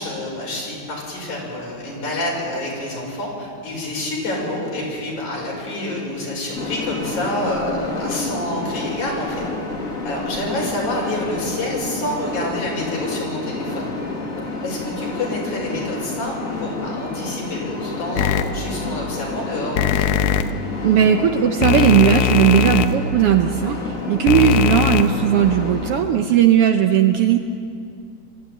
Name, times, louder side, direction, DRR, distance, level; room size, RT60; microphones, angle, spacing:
voice 1, 0.0-9.4 10.0-13.9 14.3-20.1, left 1 dB, 90° left, -3 dB, 6.8 m, -27 dB
sound 1, 6.5-26.0, left 3 dB, 30° left, 2.2 m, -30 dB
sound 2, 18.2-18.4 19.8-20.4 21.6-22.9 24.3-25.0, left 9 dB, 70° left, 1.6 m, -19 dB
voice 2, 20.8-27.4, right 9 dB, 70° right, 6 dB, 1.4 m, -17 dB
24.0 x 13.5 x 9.2 m, 2.4 s
omnidirectional pair, 3.3 m